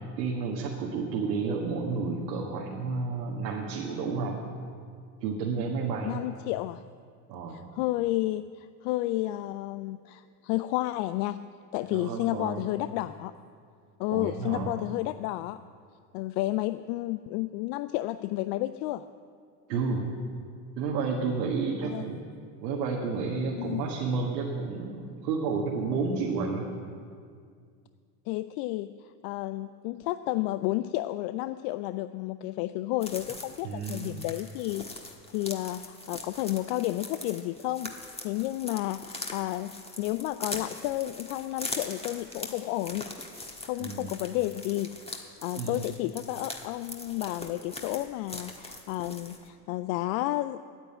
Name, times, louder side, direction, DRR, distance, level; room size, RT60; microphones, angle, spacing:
voice 1, 0.2-4.5 5.2-6.2 7.3-7.6 11.9-12.6 14.1-14.7 19.7-20.1 20.8-22.2 22.6-26.7 33.6-34.2 43.8-44.1 45.6-45.8, right 4 dB, 85° right, -2 dB, 1.6 m, -31 dB
voice 2, 6.0-6.8 7.5-11.4 11.7-13.3 14.0-15.6 16.1-19.1 21.8-22.1 23.6-23.8 28.3-43.1 43.6-44.9 45.2-50.6, left 16 dB, 65° left, 12 dB, 0.5 m, -31 dB
sound 1, 33.0-49.5, left 2 dB, 10° left, 1.4 m, -42 dB
9.4 x 8.9 x 8.8 m, 2.2 s
supercardioid pair, 95°, 48 cm